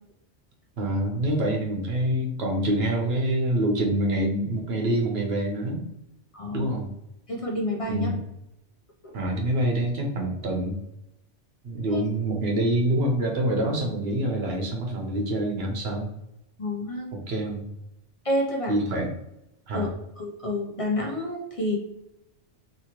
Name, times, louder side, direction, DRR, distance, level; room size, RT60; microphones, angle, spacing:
voice 1, 0.8-5.8 6.5-6.9 7.9-8.2 9.1-10.8 11.6-16.1 17.1-17.7 18.7-19.1 19.7-19.9, right 1 dB, 65° right, 1 dB, 1.0 m, -26 dB
voice 2, 6.3-6.8 7.3-8.1 16.6-17.1 18.2-18.8 19.7-19.9 20.2-21.8, left 1 dB, 40° left, -1 dB, 0.5 m, -28 dB
2.9 x 2.9 x 2.9 m, 0.85 s
omnidirectional pair, 1.2 m